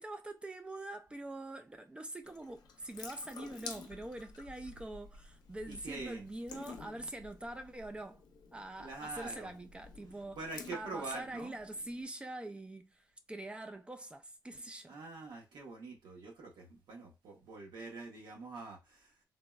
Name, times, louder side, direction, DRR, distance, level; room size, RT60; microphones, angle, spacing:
voice 1, 0.0-8.2 8.5-10.4 10.7-15.0, right 1 dB, 15° right, 0.3 m, -44 dB
Water tap faucet / Sink (filling or washing) / Drip, 2.2-12.0, left 4 dB, 65° left, 0.6 m, -52 dB
voice 2, 5.7-6.2 8.8-9.5 10.3-11.5 14.9-19.1, right 3 dB, 75° right, 0.9 m, -45 dB
3.4 x 2.1 x 2.2 m
cardioid pair, 110°, 7 cm